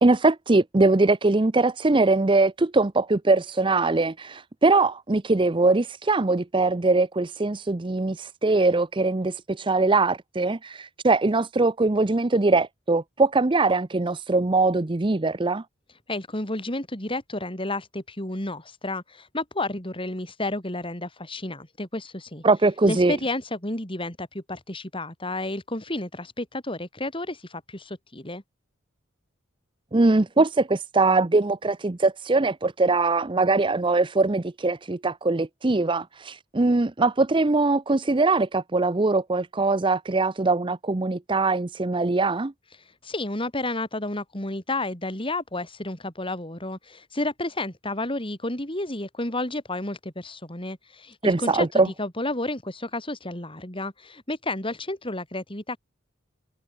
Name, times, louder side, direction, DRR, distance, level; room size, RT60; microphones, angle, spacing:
voice 1, 0.0-15.6 22.4-23.2 29.9-42.5 51.2-51.9, right 3 dB, 25° right, 0.6 m, -22 dB
voice 2, 16.1-22.4 22.9-28.4 42.8-55.8, left 2 dB, 25° left, 4.8 m, -31 dB
head